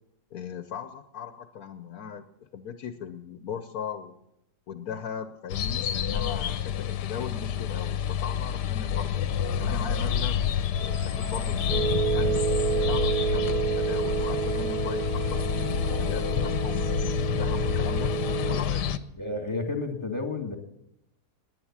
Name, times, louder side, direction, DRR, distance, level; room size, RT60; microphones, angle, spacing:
voice 1, 0.3-4.2 4.7-9.2 9.6-10.4 10.8-12.4 12.9-18.1 18.5-19.0, left 7 dB, 65° left, 10 dB, 1.2 m, -38 dB
sound 1, 5.5-19.0, left 8 dB, 85° left, 1.4 m, -28 dB
Wind instrument woodwind instrument, 10.7-17.1, right 5 dB, 35° right, 1.3 m, -43 dB
sound 2, 11.7-18.6, right 9 dB, 70° right, 1.4 m, -30 dB
voice 2, 19.2-20.6, left 3 dB, 15° left, 6 dB, 1.8 m, -31 dB
19.5 x 9.6 x 7.3 m, 0.82 s
omnidirectional pair, 1.8 m